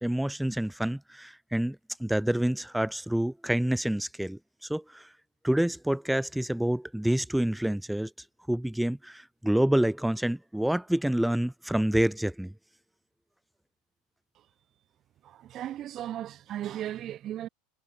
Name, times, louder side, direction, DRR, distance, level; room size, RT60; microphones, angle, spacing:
voice 1, 0.0-1.8 2.0-5.1 5.4-8.1 8.5-12.5, right 1 dB, ahead, 0.3 m, -27 dB
voice 2, 15.2-17.5, right 12 dB, 35° right, 4.7 m, -36 dB
supercardioid pair, 140°, 0 cm